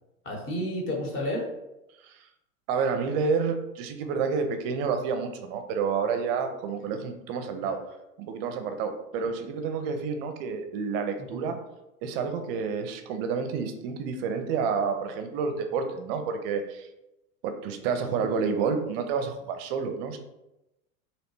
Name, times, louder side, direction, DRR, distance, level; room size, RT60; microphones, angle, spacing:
voice 1, 0.2-1.5 7.6-7.8 9.2-9.3 11.2-11.4 18.2-18.4, left 1 dB, 30° left, 0 dB, 0.8 m, -32 dB
voice 2, 2.7-7.8 8.2-11.6 12.0-16.9 17.4-20.2, right 5 dB, 45° right, 7 dB, 0.5 m, -29 dB
2.8 x 2.1 x 3.0 m, 0.92 s
hypercardioid pair, 110°, 42 cm